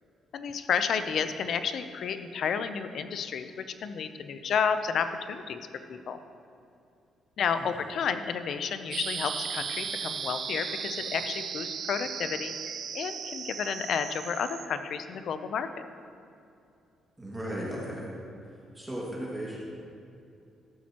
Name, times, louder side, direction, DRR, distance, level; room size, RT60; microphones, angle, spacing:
voice 1, 0.3-5.6 5.9-6.2 7.4-15.9, left 6 dB, 65° left, 10 dB, 0.5 m, -31 dB
sound 1, 8.9-14.7, right 7 dB, 60° right, 0.5 m, -36 dB
voice 2, 17.2-18.1 18.4-19.6, equal, 10° right, -5 dB, 1.9 m, -36 dB
13.0 x 7.3 x 2.9 m, 2.6 s
cardioid pair, 90°, 0 cm